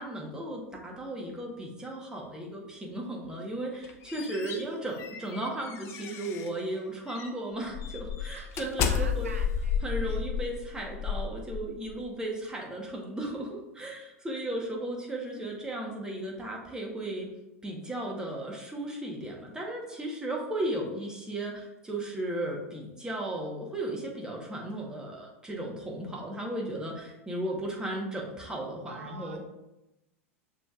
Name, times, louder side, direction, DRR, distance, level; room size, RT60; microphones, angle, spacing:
voice 1, 0.0-9.3 9.8-17.3 17.6-29.4, right 1 dB, 10° right, -1 dB, 1.1 m, -35 dB
sound 1, 3.6-6.6 7.1-7.3 7.7-12.0, left 7 dB, 35° left, 0.5 m, -32 dB
voice 2, 4.1-4.7 8.3-10.2 28.9-29.5, right 5 dB, 75° right, 4 dB, 0.7 m, -47 dB
6.6 x 3.0 x 2.4 m, 0.93 s
figure-of-eight pair, 90°, 8 cm